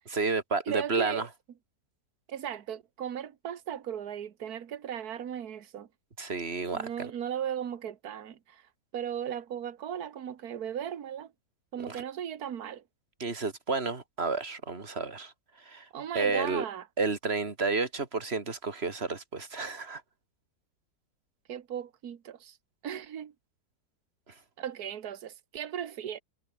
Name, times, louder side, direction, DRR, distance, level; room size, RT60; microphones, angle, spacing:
voice 1, 0.1-1.3 6.2-7.1 11.9-12.0 13.2-15.3 15.7-15.9 16.1-16.6 17.0-20.0, right 4 dB, 35° right, 2.7 m, -31 dB
voice 2, 0.7-1.3 2.3-5.9 6.7-8.6 8.9-11.3 11.7-12.8 15.9-16.9 21.5-22.6 22.8-23.3 24.6-26.2, right 9 dB, 60° right, 1.8 m, -36 dB
omnidirectional pair, 1.9 m